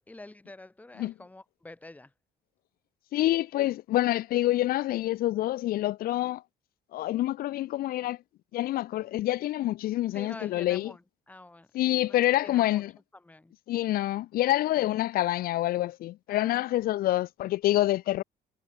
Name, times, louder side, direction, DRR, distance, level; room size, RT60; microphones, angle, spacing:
voice 1, 0.0-2.1 10.1-12.8 13.1-13.5 14.7-14.8 16.3-16.8, left 2 dB, 10° left, 1.0 m, -47 dB
voice 2, 3.1-6.4 6.9-8.2 8.5-10.9 11.7-12.9 13.7-18.2, left 15 dB, 60° left, 0.5 m, -27 dB
cardioid pair, 110°, 17 cm